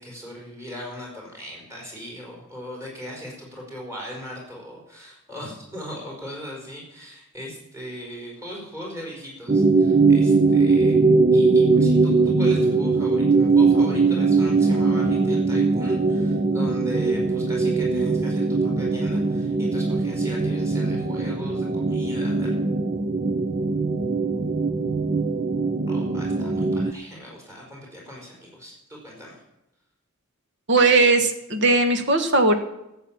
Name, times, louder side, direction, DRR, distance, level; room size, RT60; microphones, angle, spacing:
voice 1, 0.0-10.9 11.3-22.5 25.9-29.4, equal, 15° right, -2 dB, 4.9 m, -39 dB
sound 1, 9.5-26.9, right 3 dB, 30° right, 0.6 m, -21 dB
voice 2, 30.7-32.5, right 3 dB, 50° right, 7 dB, 1.7 m, -18 dB
14.0 x 8.0 x 8.9 m, 0.89 s
head